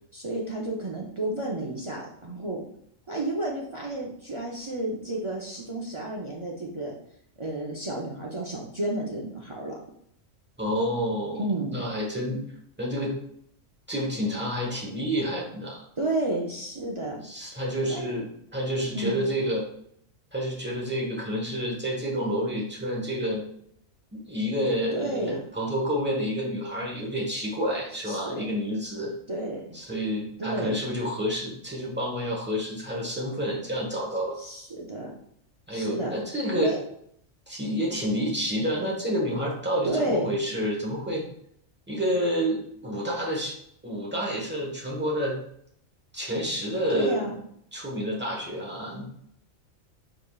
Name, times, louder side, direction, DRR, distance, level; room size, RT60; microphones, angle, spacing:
voice 1, 0.1-2.6 3.1-7.0 7.4-9.7 11.4-11.7 16.0-17.2 17.9-18.1 18.9-19.2 24.9-25.4 28.1-28.5 29.3-29.7 30.4-30.8 34.4-35.1 35.7-36.1 36.5-36.8 39.8-40.3 46.9-47.4, right 1 dB, 50° right, -3 dB, 0.3 m, -31 dB
voice 2, 10.6-11.4 11.7-12.4 12.8-13.1 13.9-15.8 17.2-19.7 20.3-23.4 24.1-29.1 29.7-34.4 35.7-36.8 37.5-41.2 41.9-43.6 43.8-45.4 46.1-47.2 47.7-49.0, equal, 10° right, -3 dB, 0.8 m, -29 dB
4.7 x 3.7 x 2.3 m, 0.68 s
omnidirectional pair, 1.4 m